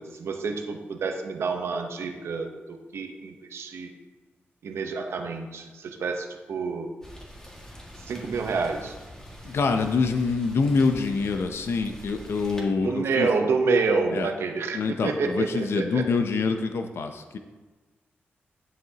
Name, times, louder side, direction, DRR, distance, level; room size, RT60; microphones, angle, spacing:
voice 1, 0.0-3.9 4.6-6.9 8.1-8.9 12.7-16.1, right 4 dB, 85° right, 4 dB, 0.9 m, -28 dB
Rain, 7.0-12.6, equal, 15° left, 1.8 m, -45 dB
voice 2, 9.4-13.3 14.1-14.3 14.7-17.4, left 4 dB, 75° left, 6 dB, 0.6 m, -25 dB
10.5 x 7.8 x 2.9 m, 1.2 s
cardioid pair, 90°, 4 cm